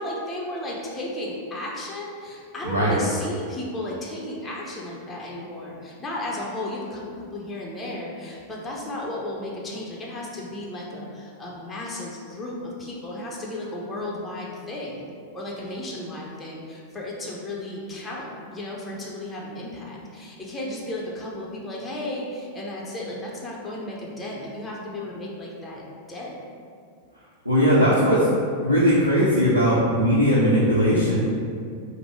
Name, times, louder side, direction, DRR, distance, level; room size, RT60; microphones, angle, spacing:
voice 1, 0.0-15.0 15.3-26.4, left 1 dB, 10° left, -4 dB, 0.8 m, -34 dB
voice 2, 2.6-3.0 27.4-28.3 28.6-31.2, equal, 85° right, -8 dB, 0.7 m, -19 dB
5.1 x 2.1 x 4.5 m, 2.2 s
figure-of-eight pair, 90°, 0 cm